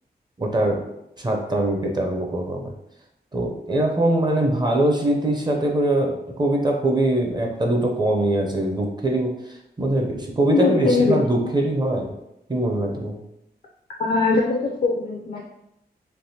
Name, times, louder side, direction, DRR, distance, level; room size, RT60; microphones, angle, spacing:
voice 1, 0.4-0.8 1.2-2.6 3.3-9.4 9.8-12.1 12.5-13.2, right 1 dB, 25° right, 1 dB, 0.5 m, -22 dB
voice 2, 10.5-11.5 14.0-15.4, left 3 dB, 55° left, 0 dB, 0.4 m, -21 dB
3.3 x 2.5 x 2.7 m, 0.83 s
wide cardioid pair, 125°, 17 cm